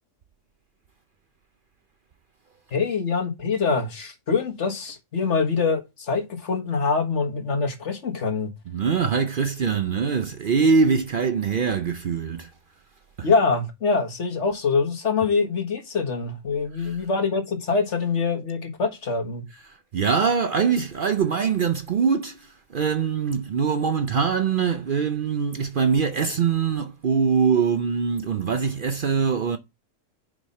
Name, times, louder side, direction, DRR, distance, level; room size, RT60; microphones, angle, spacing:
voice 1, 2.7-8.5 13.2-19.4, left 4 dB, 65° left, 1.8 m, -24 dB
voice 2, 8.7-12.5 13.2-13.3 16.7-17.0 19.6-29.6, right 6 dB, 55° right, 0.7 m, -23 dB
7.0 x 5.4 x 4.2 m
omnidirectional pair, 1.3 m